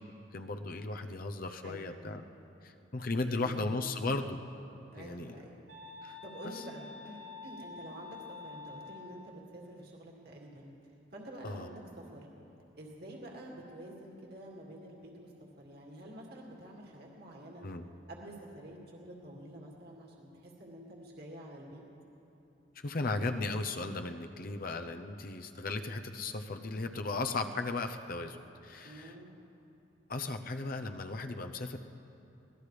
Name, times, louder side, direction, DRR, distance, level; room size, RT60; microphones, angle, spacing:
voice 1, 0.3-2.2 2.6-4.4 4.9-5.4 6.0-6.2 6.4-6.6 11.4-11.7 17.6-17.9 22.8-28.4 28.6-29.1 30.1-31.8, left 3 dB, 50° left, 6 dB, 0.7 m, -36 dB
voice 2, 3.2-3.7 4.9-5.6 6.2-10.7 11.1-12.3 12.8-15.3 15.6-17.6 18.1-21.8 28.8-29.4, right 1 dB, 60° right, -2 dB, 2.3 m, -48 dB
sound 1, 5.7-9.3, left 4 dB, 75° right, 1.4 m, -48 dB
23.5 x 18.5 x 3.3 m, 2.9 s
head